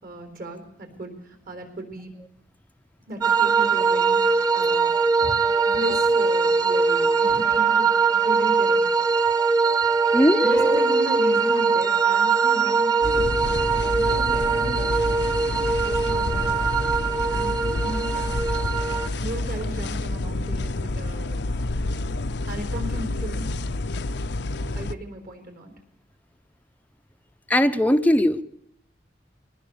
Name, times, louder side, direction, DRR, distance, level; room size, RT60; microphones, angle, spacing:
voice 1, 0.0-1.1 1.5-2.1 3.1-4.2 4.5-4.9 5.3-8.8 10.4-13.3 14.0-14.9 15.8-16.5 17.3-18.4 19.2-21.4 22.5-23.5 24.8-25.7, right 1 dB, 50° right, 6 dB, 4.3 m, -35 dB
sound 1, 3.2-19.1, right 5 dB, 20° right, 1.4 m, -21 dB
voice 2, 10.1-10.9 27.5-28.4, left 1 dB, 10° left, 8 dB, 0.7 m, -20 dB
sound 2, 13.0-24.9, left 2 dB, 65° left, 0.7 m, -28 dB
22.0 x 18.0 x 6.9 m, 0.73 s
head